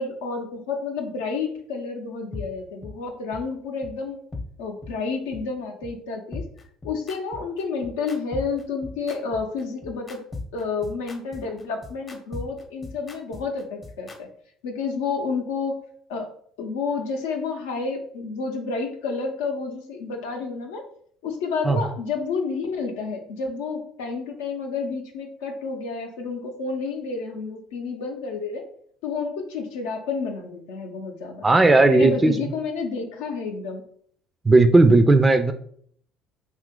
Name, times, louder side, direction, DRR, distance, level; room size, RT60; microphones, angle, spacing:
voice 1, 0.0-4.2 4.6-6.4 6.8-10.2 10.5-14.3 14.6-15.8 16.1-16.3 16.6-20.8 21.2-28.6 29.0-31.5 31.9-33.8, left 4 dB, 85° left, 4 dB, 0.6 m, -30 dB
sound 1, 2.3-2.4 2.8-2.9 3.3-3.4 3.8-3.9 4.3-4.4 4.8-4.9 5.3-5.4 5.8-5.9 6.3-14.2, left 3 dB, 30° left, 0.7 m, -37 dB
voice 2, 31.4-32.3 34.5-35.5, right 2 dB, 20° right, 8 dB, 0.3 m, -15 dB
2.7 x 2.4 x 3.6 m, 0.62 s
hypercardioid pair, 70°, 0 cm